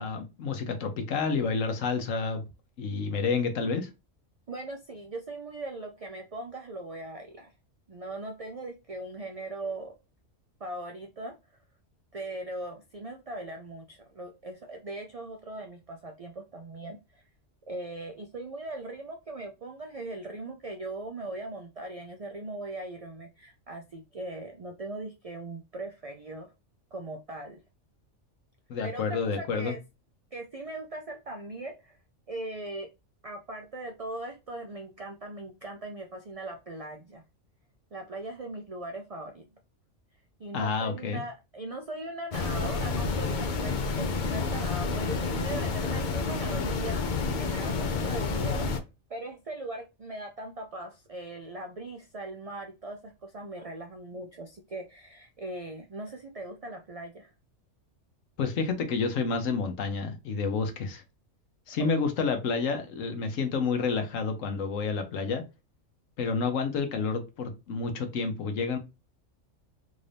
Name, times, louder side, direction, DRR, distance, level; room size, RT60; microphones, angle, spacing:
voice 1, 0.0-2.4 2.8-3.9 28.7-29.7 40.5-41.2 58.4-61.0 61.7-65.4 66.2-68.8, left 4 dB, 85° left, 1.2 m, -29 dB
voice 2, 4.5-7.5 7.9-9.9 10.6-11.3 12.1-17.2 17.7-26.5 26.9-27.6 28.8-29.8 30.3-32.0 32.3-32.9 33.2-37.2 37.9-39.5 40.4-47.0 47.4-48.7 49.1-57.3 61.8-61.9, right 2 dB, 50° right, 0.4 m, -39 dB
sound 1, 42.3-48.8, left 4 dB, 55° left, 0.6 m, -29 dB
3.7 x 2.6 x 3.3 m
omnidirectional pair, 1.3 m